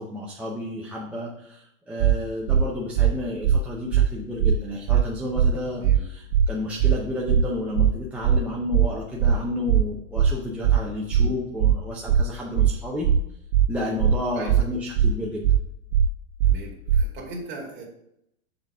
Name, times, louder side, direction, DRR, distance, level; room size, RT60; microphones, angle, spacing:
voice 1, 0.0-13.1 13.7-15.4, left 1 dB, 5° right, -5 dB, 0.6 m, -31 dB
sound 1, 2.0-2.2 2.5-2.6 3.0-3.1 3.4-3.6 3.9-4.1 4.4-4.6 4.9-5.0 5.4-5.5 5.8-6.0 6.3-6.5 6.8-7.0 7.3-7.4 7.8-7.9 8.2-8.4 8.7-8.9 9.2-9.4 9.7-9.8 10.2-10.3 10.6-10.8 11.1-11.3 11.6-11.8 12.1-12.2 12.6-12.7 13.0-13.2 13.5-13.7 14.0-14.2 14.5-14.6 15.0-15.1 15.4-15.6 15.9-16.1 16.4-16.6 16.9-17.0, right 9 dB, 65° right, 0.5 m, -18 dB
voice 2, 11.0-11.4 14.3-14.6 16.4-17.8, right 2 dB, 30° right, -1 dB, 2.3 m, -39 dB
6.7 x 4.0 x 6.0 m, 0.76 s
hypercardioid pair, 140°, 40 cm